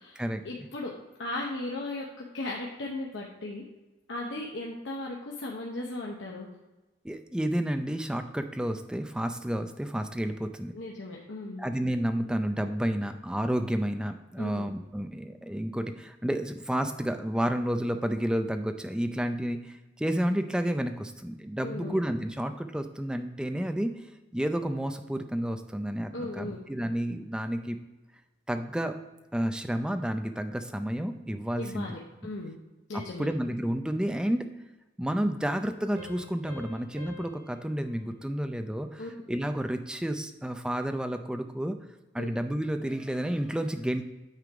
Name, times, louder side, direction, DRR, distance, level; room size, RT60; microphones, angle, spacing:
voice 1, 0.0-3.6 4.1-6.5 10.7-11.6 14.4-14.7 21.6-22.0 26.1-26.6 31.6-32.6 32.9-33.3 39.0-39.1 42.2-42.3, left 2 dB, 80° left, -2 dB, 0.9 m, -37 dB
voice 2, 7.0-10.7 11.6-23.9 24.3-27.8 28.5-29.0 29.3-32.0 32.9-34.5 35.0-41.8 42.1-44.0, equal, 5° right, 7 dB, 0.4 m, -30 dB
sound 1, 36.0-39.3, left 1 dB, 55° right, 1.7 m, -50 dB
9.0 x 3.8 x 4.8 m, 1.1 s
head